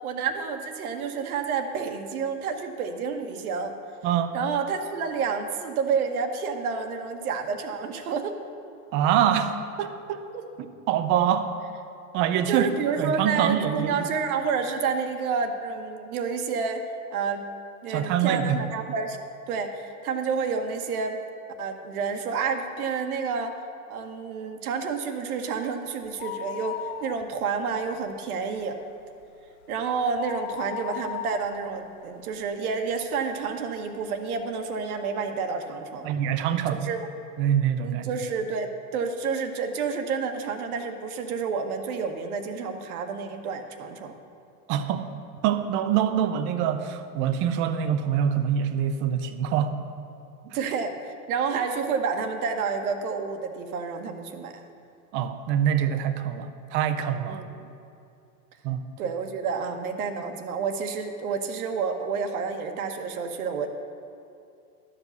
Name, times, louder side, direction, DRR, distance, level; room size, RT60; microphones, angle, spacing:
voice 1, 0.0-3.7 4.3-8.4 10.3-10.4 12.5-16.8 17.1-17.5 17.8-21.2 21.6-23.6 23.9-28.8 29.7-36.1 36.7-37.1 37.8-44.1 50.5-54.6 57.3-57.5 59.0-63.7, right 5 dB, 65° right, 6 dB, 1.3 m, -29 dB
voice 2, 4.0-4.3 8.9-10.2 10.9-11.5 12.1-12.7 13.0-14.1 17.9-18.6 36.0-36.9 37.4-38.1 44.7-45.1 45.4-49.8 55.1-57.4 58.6-58.8, right 9 dB, 25° right, 10 dB, 0.4 m, -25 dB
sound 1, 26.1-27.7 28.0-28.1 28.6-33.0 33.5-33.6 34.4-34.5 34.7-34.8, left 11 dB, 55° left, 0.6 m, -37 dB
12.5 x 5.0 x 8.0 m, 2.6 s
hypercardioid pair, 125°, 46 cm